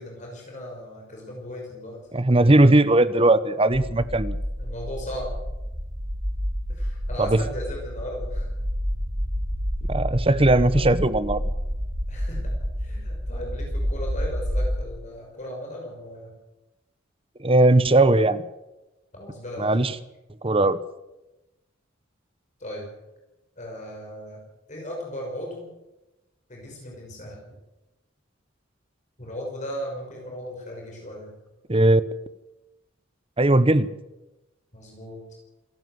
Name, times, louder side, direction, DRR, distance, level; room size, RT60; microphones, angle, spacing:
voice 1, 0.0-2.0 4.6-5.3 6.7-8.5 10.7-10.9 12.1-16.3 19.1-19.9 22.6-22.9 23.6-24.4 24.7-25.7 26.5-27.4 29.2-31.4 34.7-35.2, equal, 40° left, -1 dB, 6.0 m, -37 dB
voice 2, 2.1-4.4 7.2-7.4 9.9-11.5 17.4-18.4 19.6-19.9 20.4-20.8 31.7-32.0 33.4-33.9, right 2 dB, 30° right, 14 dB, 1.0 m, -18 dB
sound 1, 3.7-14.8, equal, 45° right, 6.2 m, -29 dB
27.5 x 13.0 x 7.9 m, 1.0 s
head